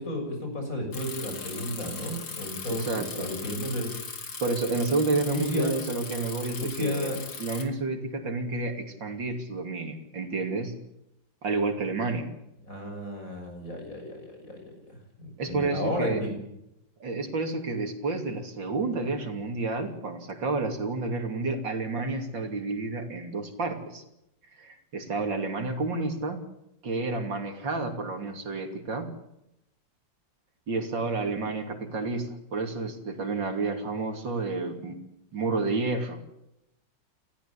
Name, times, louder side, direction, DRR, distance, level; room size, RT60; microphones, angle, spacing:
voice 1, 0.0-3.9 5.3-5.8 6.6-7.2 12.7-14.6 15.2-16.3, left 1 dB, 45° left, 2 dB, 7.4 m, -33 dB
Bicycle, 0.9-7.6, left 4 dB, 85° left, 3.4 m, -39 dB
voice 2, 2.7-3.3 4.4-7.1 7.4-10.7 11.4-12.3 15.4-16.2 17.0-24.0 24.5-26.4 26.8-29.1 30.7-35.0 35.3-36.2, right 3 dB, 75° right, 4 dB, 3.5 m, -30 dB
30.0 x 14.0 x 8.6 m, 0.84 s
omnidirectional pair, 2.0 m